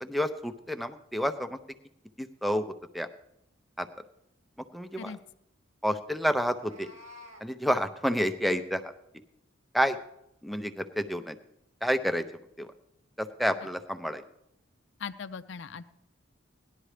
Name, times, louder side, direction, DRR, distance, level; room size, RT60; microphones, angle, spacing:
voice 1, 0.0-1.6 2.2-2.7 2.9-3.1 3.8-3.9 4.7-5.1 5.8-6.9 7.4-8.9 9.7-10.0 10.4-11.3 11.8-12.2 12.6-12.7 13.2-14.2, equal, ahead, 8 dB, 0.5 m, -29 dB
Meow, 6.4-7.4, left 1 dB, 90° right, 2.9 m, -50 dB
voice 2, 15.0-15.9, left 6 dB, 65° left, 10 dB, 0.5 m, -39 dB
18.5 x 11.0 x 3.3 m, 0.79 s
head